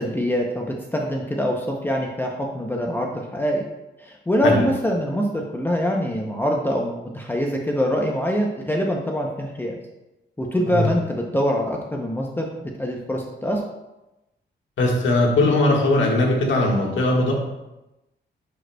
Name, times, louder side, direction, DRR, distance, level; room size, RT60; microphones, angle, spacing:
voice 1, 0.0-3.6 4.0-9.8 10.4-12.5 12.8-13.6, equal, 10° left, 0 dB, 0.6 m, -24 dB
voice 2, 14.8-17.3, left 2 dB, 85° left, -1 dB, 1.6 m, -19 dB
10.5 x 5.1 x 2.2 m, 0.97 s
wide cardioid pair, 130°, 19 cm